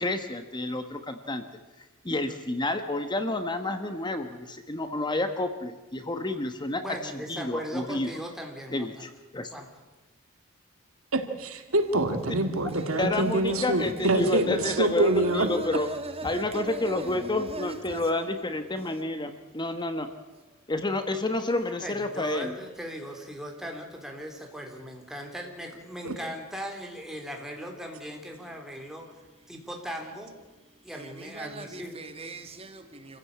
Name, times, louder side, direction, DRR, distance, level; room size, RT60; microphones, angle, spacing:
voice 1, 0.0-1.4 2.0-6.8 7.3-8.1 8.7-9.5 13.0-15.9 16.2-20.1 20.7-22.5, left 2 dB, 20° left, 1.2 m, -29 dB
voice 2, 6.8-9.1 9.5-9.7 21.8-29.1 29.5-30.3 30.8-32.0, equal, ahead, 3.7 m, -39 dB
voice 3, 11.1-15.5 26.0-26.1, right 2 dB, 75° right, 2.1 m, -25 dB
voice 4, 12.3-13.1 13.5-18.3 30.9-33.2, right 2 dB, 30° right, 2.2 m, -39 dB
27.0 x 15.5 x 8.6 m
head